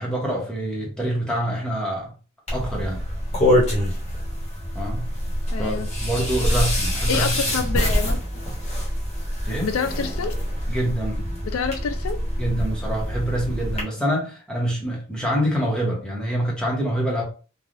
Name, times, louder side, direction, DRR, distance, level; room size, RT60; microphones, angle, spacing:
voice 1, 0.0-2.1 2.5-3.0 4.7-5.1 5.6-7.3 9.4-9.7 10.7-11.3 12.4-17.2, right 1 dB, 5° left, 1.0 m, -26 dB
sound 1, 2.5-13.8, equal, 30° left, 1.1 m, -25 dB
voice 2, 5.5-5.9 7.1-8.2 9.6-10.3 11.4-12.2, left 5 dB, 85° left, 0.4 m, -27 dB
3.2 x 2.3 x 2.6 m
head